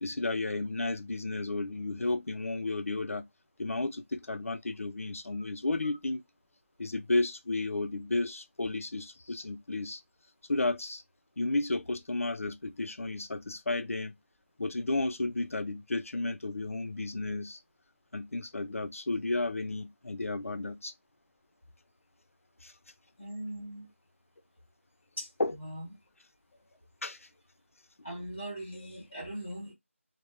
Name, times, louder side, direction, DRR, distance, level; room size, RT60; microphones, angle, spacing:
voice 1, 0.0-3.3 3.6-6.2 6.8-10.0 10.5-11.0 11.4-14.2 14.6-17.6 18.1-20.9 22.6-22.7 25.4-25.5 27.0-27.2, left 2 dB, 75° left, 0.4 m, -32 dB
voice 2, 23.2-23.9 25.2-25.3 25.6-25.9 28.0-29.7, right 1 dB, 5° left, 0.5 m, -40 dB
2.2 x 2.1 x 3.0 m
figure-of-eight pair, 180°, 8 cm